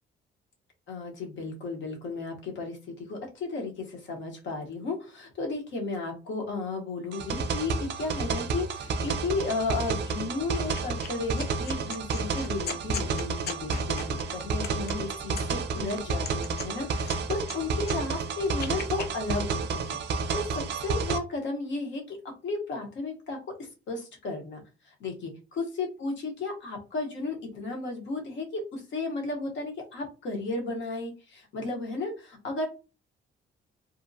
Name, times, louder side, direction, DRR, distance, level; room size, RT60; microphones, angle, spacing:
voice 1, 0.9-22.2 22.4-32.7, left 3 dB, 70° left, 2 dB, 1.0 m, -34 dB
sound 1, 7.1-21.2, right 4 dB, 60° right, 0.4 m, -31 dB
sound 2, 10.5-11.1 11.4-15.7 16.1-17.6 17.8-19.1, left 6 dB, 55° left, 0.5 m, -39 dB
2.6 x 2.1 x 2.6 m, 0.32 s
cardioid pair, 90°, 20 cm